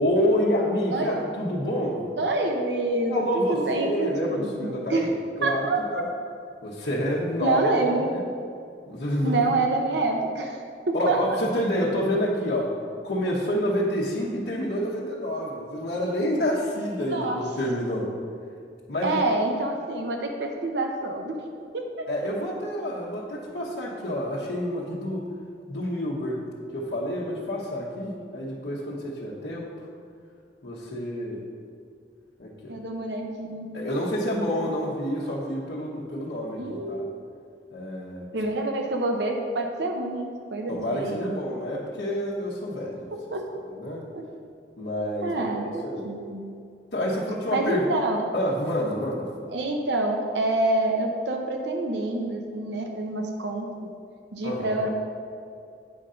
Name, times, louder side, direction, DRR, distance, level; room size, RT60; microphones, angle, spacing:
voice 1, 0.0-2.0 3.1-5.1 5.4-6.0 6.6-8.2 8.9-9.6 10.9-12.7 13.0-18.1 18.9-19.2 22.1-25.3 25.7-26.5 26.7-29.7 30.6-31.4 32.4-32.8 33.7-37.1 37.7-38.3 40.7-43.1 43.7-44.0 44.8-46.0 46.9-47.8 48.3-49.3 54.4-54.8, equal, 80° left, -6 dB, 1.1 m, -28 dB
voice 2, 2.2-6.0 7.4-8.1 9.2-10.6 11.1-11.2 17.1-17.4 19.0-21.3 21.7-22.1 32.7-33.7 36.6-37.1 38.3-41.2 43.1-43.4 44.1-44.2 45.2-46.4 47.5-48.2 49.5-53.9 54.3-54.9, right 2 dB, 85° right, 3 dB, 0.7 m, -27 dB
8.8 x 3.8 x 5.6 m, 2.4 s
head